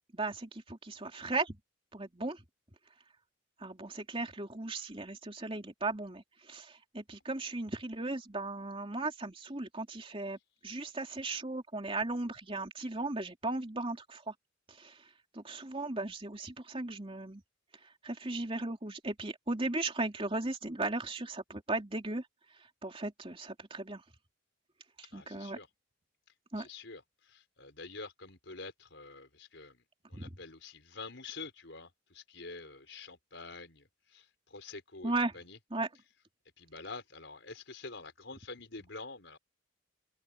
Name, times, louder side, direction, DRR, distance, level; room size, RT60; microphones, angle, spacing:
voice 1, 0.1-1.6 1.9-2.4 3.6-10.4 10.6-14.3 14.8-15.0 15.3-17.4 18.0-22.2 22.8-24.0 25.0-25.6 26.5-26.7 30.1-30.3 35.0-35.3 35.7-35.9, right 2 dB, 25° right, 3.1 m, -36 dB
voice 2, 25.1-25.7 26.6-35.6 36.6-39.4, left 3 dB, 65° left, 5.6 m, -47 dB
open air
head